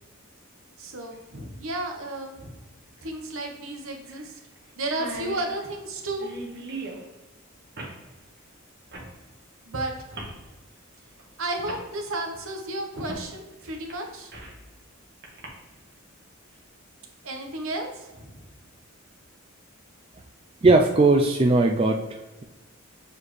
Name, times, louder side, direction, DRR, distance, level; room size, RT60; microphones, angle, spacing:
voice 1, 0.8-2.6 3.0-4.4 4.7-6.3 9.6-10.3 11.4-14.3 17.2-18.4, right 2 dB, 70° right, 3 dB, 1.1 m, -33 dB
sound 1, 1.1-1.2 3.0-3.1 3.4-3.5 4.1-4.3 4.6-4.7 4.8-7.0 7.8-8.0 8.9-9.1 10.1-10.4 11.2-11.3 11.6-11.8 13.1-13.3 13.7-14.6 15.2-15.5, right 2 dB, 55° right, 1.5 m, -39 dB
voice 2, 20.6-22.0, right 2 dB, 25° right, 2 dB, 0.4 m, -18 dB
7.3 x 4.4 x 3.2 m, 1.1 s
head